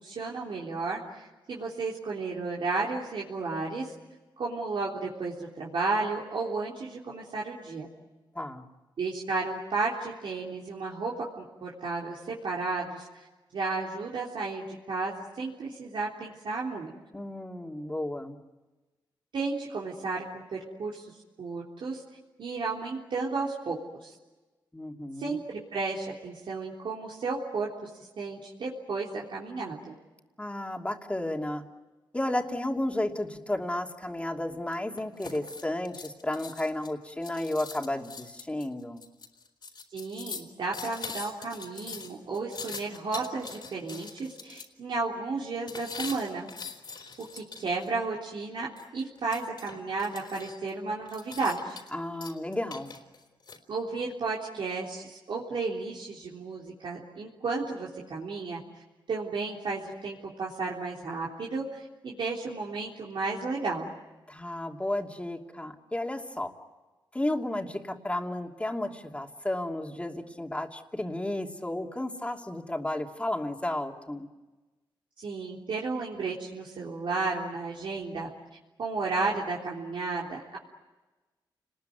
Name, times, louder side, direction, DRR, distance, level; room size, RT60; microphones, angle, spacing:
voice 1, 0.0-3.9 4.4-7.9 9.0-13.1 13.5-16.9 19.3-21.1 21.4-22.0 22.4-24.1 25.2-27.7 28.0-29.9 39.9-46.5 47.3-51.8 53.7-58.6 59.1-63.9 75.2-78.3 78.8-80.6, right 3 dB, 75° right, -4 dB, 3.5 m, -33 dB
voice 2, 8.3-8.6 17.1-18.4 24.7-25.4 30.4-31.6 32.1-39.1 51.9-53.0 64.3-66.5 67.1-74.3, left 1 dB, 15° left, 3 dB, 2.9 m, -33 dB
sound 1, 34.7-44.7 45.7-47.9 48.8-50.7 51.1-52.0 52.2-53.6, left 5 dB, 60° left, 3.9 m, -42 dB
29.5 x 20.5 x 9.4 m, 1.2 s
cardioid pair, 75°, 9 cm